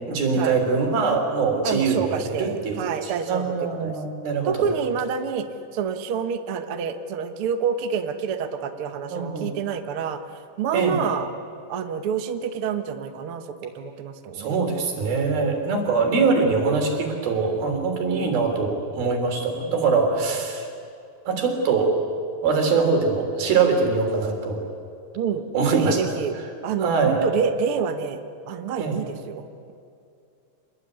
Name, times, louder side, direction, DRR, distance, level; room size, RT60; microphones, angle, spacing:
voice 1, 0.1-4.7 9.1-9.5 10.7-11.0 14.3-20.7 21.3-21.9 22.4-24.6 25.5-26.0 26.8-27.2 28.8-29.0, right 4 dB, 85° right, 3 dB, 5.3 m, -23 dB
voice 2, 1.6-3.5 3.8-3.9 4.4-5.5 5.7-10.2 10.6-11.3 11.7-14.6 20.1-20.3 25.1-25.4 25.7-26.3 26.6-28.2 28.5-29.4, right 6 dB, 60° right, 7 dB, 1.5 m, -27 dB
27.0 x 20.5 x 9.6 m, 2.5 s
omnidirectional pair, 4.2 m